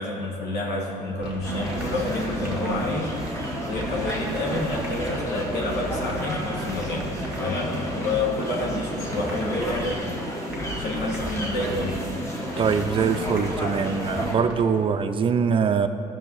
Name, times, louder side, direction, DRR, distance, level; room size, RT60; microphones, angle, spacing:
voice 1, 0.0-3.1 3.6-7.1 7.4-10.0 10.8-12.0, left 1 dB, 75° left, -3 dB, 1.5 m, -29 dB
sound 1, 1.2-14.6, right 1 dB, 5° right, 2.1 m, -37 dB
sound 2, 1.4-14.4, left 1 dB, 15° left, 1.3 m, -31 dB
voice 2, 12.6-15.9, right 6 dB, 30° right, 8 dB, 0.5 m, -23 dB
13.5 x 6.3 x 4.0 m, 2.9 s
cardioid pair, 110°, 17 cm